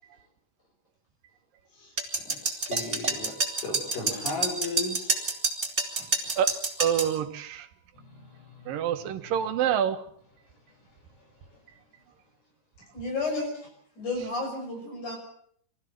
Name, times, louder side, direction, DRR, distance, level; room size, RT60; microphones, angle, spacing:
sound 1, 2.0-7.1, right 3 dB, 20° right, 3.5 m, -28 dB
voice 1, 2.2-5.2 6.0-6.1, left 2 dB, 80° left, 8.0 m, -36 dB
voice 2, 6.4-7.7 8.7-10.0, right 9 dB, 85° right, 3.1 m, -27 dB
voice 3, 12.9-13.7 14.0-15.2, left 2 dB, 60° left, 7.3 m, -32 dB
26.0 x 15.0 x 7.6 m
omnidirectional pair, 3.9 m